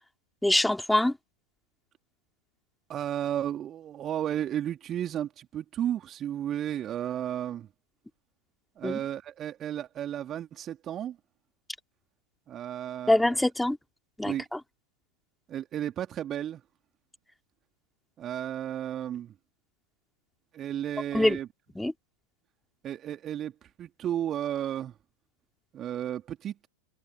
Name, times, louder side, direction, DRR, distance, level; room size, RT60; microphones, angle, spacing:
voice 1, 0.4-1.1 8.8-9.0 13.1-13.8 14.2-14.6 21.1-21.4 21.8-21.9, left 1 dB, 5° left, 3.6 m, -24 dB
voice 2, 2.9-7.7 8.8-11.2 12.5-13.2 14.2-14.4 15.5-16.6 18.2-19.3 20.5-21.5 22.8-23.5 23.8-24.9 25.7-26.5, right 11 dB, 30° right, 2.8 m, -33 dB
figure-of-eight pair, 90°, 0 cm